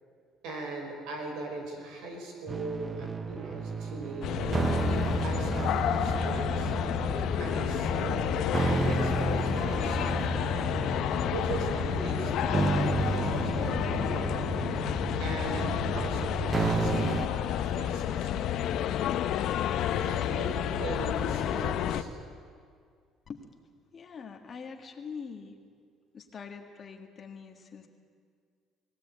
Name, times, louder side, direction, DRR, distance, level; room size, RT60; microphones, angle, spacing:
voice 1, 0.4-4.7 5.2-6.7 7.4-10.8 11.3-14.4 15.2-18.6 19.9-22.1, right 2 dB, 85° right, 2 dB, 5.3 m, -39 dB
sound 1, 2.5-17.3, right 3 dB, 25° right, 0.7 m, -32 dB
sound 2, 4.2-22.0, left 10 dB, 65° left, 0.9 m, -30 dB
voice 2, 23.9-25.6 26.1-27.9, left 5 dB, 35° left, 3 dB, 1.7 m, -43 dB
21.0 x 16.0 x 9.0 m, 2.1 s
cardioid pair, 120°, 0 cm